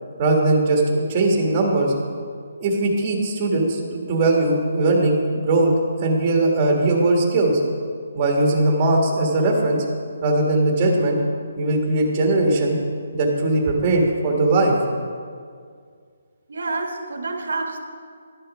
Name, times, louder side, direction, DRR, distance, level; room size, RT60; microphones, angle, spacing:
voice 1, 0.2-1.9 2.6-5.7 6.0-7.6 8.1-9.8 10.2-11.2 11.6-12.8 13.1-14.7, right 2 dB, 20° right, 0 dB, 1.4 m, -19 dB
voice 2, 16.5-17.8, right 3 dB, 80° right, 5 dB, 1.2 m, -28 dB
11.5 x 7.9 x 5.2 m, 2.1 s
hypercardioid pair, 170°, 0 cm